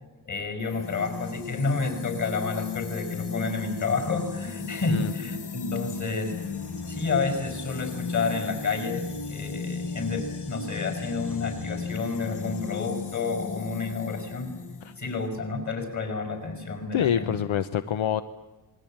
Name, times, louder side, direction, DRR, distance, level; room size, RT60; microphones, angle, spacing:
voice 1, 0.3-6.4 6.9-14.6 15.0-17.3, left 4 dB, 35° left, 7 dB, 5.5 m, -30 dB
sound 1, 0.6-15.3, left 5 dB, 55° left, 2.1 m, -35 dB
voice 2, 16.9-18.2, left 9 dB, 75° left, 11 dB, 1.0 m, -26 dB
27.5 x 21.0 x 8.8 m, 1.2 s
wide cardioid pair, 175°, 47 cm